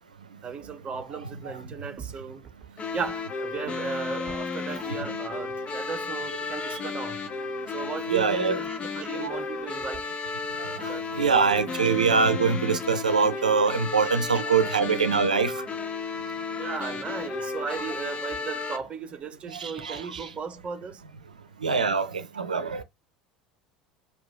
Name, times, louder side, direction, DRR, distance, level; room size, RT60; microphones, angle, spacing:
voice 1, 0.4-2.4 2.9-7.2 7.7-10.1 10.8-11.1 14.0-14.1 14.7-15.0 16.6-21.0, right 5 dB, 30° right, 0.8 m, -36 dB
sound 1, 2.8-18.8, left 4 dB, 30° left, 0.8 m, -33 dB
voice 2, 8.1-8.6 9.1-9.4 10.6-15.5 19.5-20.3 21.6-22.8, right 5 dB, 80° right, 0.6 m, -24 dB
4.8 x 2.4 x 3.5 m
figure-of-eight pair, 70°, 4 cm